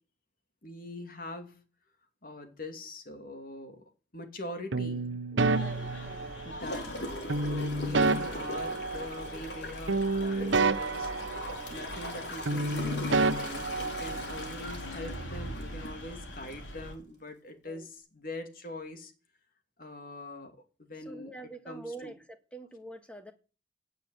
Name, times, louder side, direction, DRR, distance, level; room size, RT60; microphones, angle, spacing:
voice 1, 0.6-1.6 2.2-3.8 4.1-5.1 6.4-6.9 7.5-11.4 11.7-19.1 19.8-21.3 21.7-22.1, left 1 dB, 50° left, 2.6 m, -43 dB
sound 1, 4.7-6.7 7.3-9.6 9.9-12.2 12.5-14.5, right 3 dB, 90° right, 1.0 m, -30 dB
voice 2, 5.3-6.3 17.6-17.9 21.1-23.3, right 2 dB, 5° left, 1.7 m, -46 dB
sound 2, 5.4-16.9, equal, 80° left, 4.4 m, -43 dB
Gurgling / Toilet flush, 6.6-16.0 16.5-16.6, left 2 dB, 65° left, 4.2 m, -40 dB
16.5 x 6.9 x 9.2 m
head